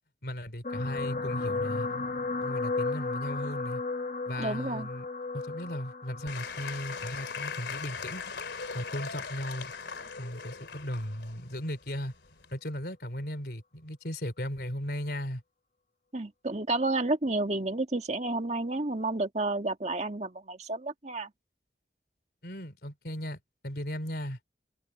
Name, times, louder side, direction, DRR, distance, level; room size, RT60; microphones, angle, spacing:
voice 1, 0.2-1.9 2.4-3.8 4.3-5.1 5.3-8.2 8.7-9.7 10.2-12.1 12.5-15.4 22.4-23.4 23.6-24.4, equal, 65° left, 3.6 m, -36 dB
sound 1, 0.6-9.1 9.9-10.1 10.4-10.5, left 3 dB, 45° left, 1.2 m, -35 dB
voice 2, 4.4-4.9 16.1-21.3, right 2 dB, 40° right, 1.7 m, -31 dB
Applause / Crowd, 6.3-12.6, left 5 dB, 85° left, 3.0 m, -40 dB
head